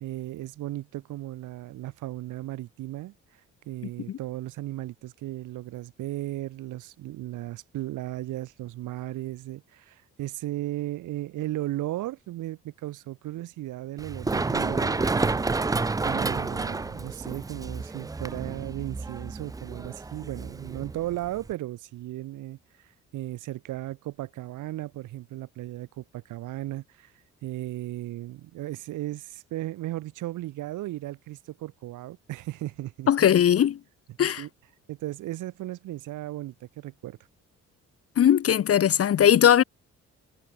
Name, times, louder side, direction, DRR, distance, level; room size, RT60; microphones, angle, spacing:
voice 1, 0.0-3.1 3.7-15.5 16.0-27.1 27.4-33.1 34.1-34.5 34.9-37.2, right 16 dB, 85° right, 1.9 m, -36 dB
Run, 14.0-21.5, right 3 dB, 10° right, 0.4 m, -30 dB
voice 2, 33.1-33.8 34.2-34.4 38.2-39.6, left 9 dB, 50° left, 1.0 m, -19 dB
cardioid pair, 90°, 30 cm